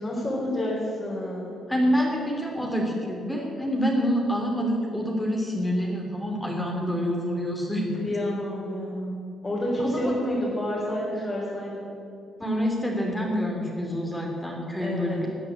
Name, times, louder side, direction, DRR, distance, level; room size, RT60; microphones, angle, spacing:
voice 1, 0.0-1.6 8.0-11.9 14.8-15.3, left 1 dB, 25° left, -6 dB, 4.2 m, -29 dB
voice 2, 1.7-8.0 9.8-10.4 12.4-15.3, equal, 10° left, -1 dB, 2.8 m, -27 dB
14.0 x 8.5 x 8.5 m, 2.6 s
cardioid pair, 90°, 0 cm